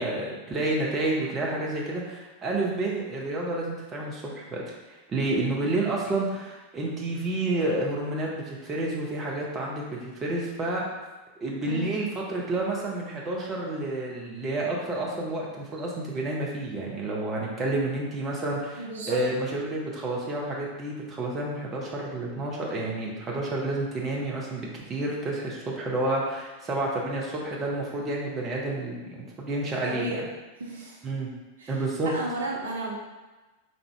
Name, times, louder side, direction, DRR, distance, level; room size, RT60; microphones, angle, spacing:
voice 1, 0.0-4.6 4.9-10.9 11.4-30.2 31.0-31.3 31.7-32.1, right 2 dB, 25° right, -3 dB, 0.8 m, -30 dB
voice 2, 18.8-19.2 29.9-30.2 30.6-31.0 31.6-31.7 32.0-33.0, right 2 dB, 65° right, -2 dB, 0.5 m, -33 dB
3.5 x 2.6 x 3.2 m, 1.2 s
figure-of-eight pair, 90°, 0 cm